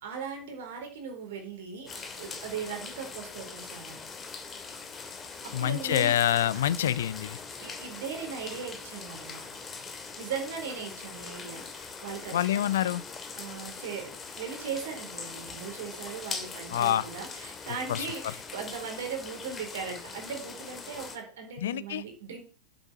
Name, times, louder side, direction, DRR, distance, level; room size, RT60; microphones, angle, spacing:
voice 1, 0.0-4.0 5.4-6.1 7.6-9.4 10.2-12.7 13.4-22.4, right 6 dB, 55° right, 4.3 m, -38 dB
sound 1, 1.9-21.2, left 4 dB, 20° left, 2.3 m, -42 dB
voice 2, 5.5-7.4 12.3-13.0 16.7-17.1 17.9-18.1 21.6-22.0, left 11 dB, 60° left, 0.7 m, -26 dB
8.2 x 7.9 x 5.9 m
figure-of-eight pair, 90°, 0 cm